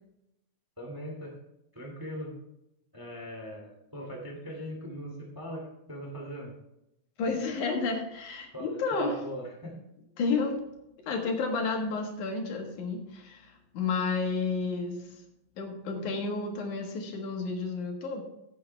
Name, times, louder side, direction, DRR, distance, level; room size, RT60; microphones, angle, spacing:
voice 1, 0.8-1.3 1.7-2.3 2.9-6.5 8.5-9.8, equal, 10° right, 0 dB, 1.7 m, -40 dB
voice 2, 7.2-9.2 10.2-10.5 11.0-15.1 15.6-18.2, left 4 dB, 75° left, 2 dB, 3.0 m, -31 dB
15.0 x 7.7 x 3.3 m, 0.84 s
omnidirectional pair, 3.5 m